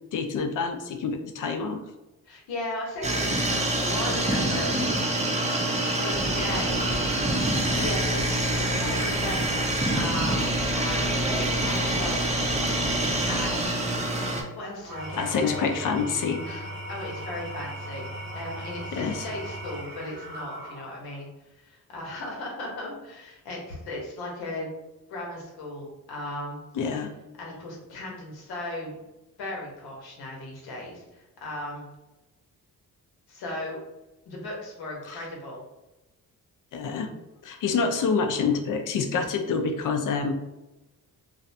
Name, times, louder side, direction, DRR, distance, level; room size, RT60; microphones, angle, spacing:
voice 1, 0.1-1.8 15.1-16.8 18.9-19.3 26.7-27.1 35.1-35.3 36.7-37.1 37.4-40.3, left 5 dB, 55° left, 6 dB, 0.5 m, -27 dB
voice 2, 2.2-4.7 5.9-7.0 7.5-13.0 13.3-13.8 14.5-15.6 16.9-24.7 25.1-26.6 27.4-29.0 29.4-31.9 33.3-33.8 34.3-35.6, left 1 dB, 90° left, -2 dB, 0.9 m, -36 dB
sound 1, 3.0-14.4, right 1 dB, 20° right, 0.5 m, -26 dB
sound 2, 6.1-13.7, right 1 dB, 80° right, 0.6 m, -37 dB
Engine / Tools, 14.8-21.2, right 1 dB, 60° right, 1.1 m, -38 dB
2.5 x 2.1 x 2.6 m, 1.0 s
cardioid pair, 80°, 37 cm